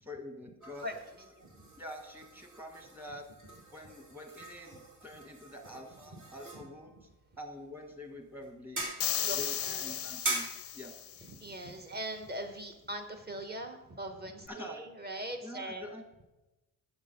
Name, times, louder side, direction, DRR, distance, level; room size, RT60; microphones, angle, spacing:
voice 1, 0.0-0.8 1.8-3.2 3.7-6.9 7.4-8.9 9.3-10.5 10.7-10.9 14.5-14.8 15.4-16.0, left 1 dB, 5° right, 4 dB, 1.5 m, -46 dB
sound 1, 0.6-13.7, right 2 dB, 55° right, 2.7 m, -44 dB
sound 2, 9.0-11.3, left 11 dB, 40° left, 0.5 m, -35 dB
voice 2, 9.2-10.0 11.4-15.9, right 1 dB, 25° right, 4 dB, 1.3 m, -41 dB
7.0 x 6.6 x 5.3 m, 1.0 s
cardioid pair, 105°, 36 cm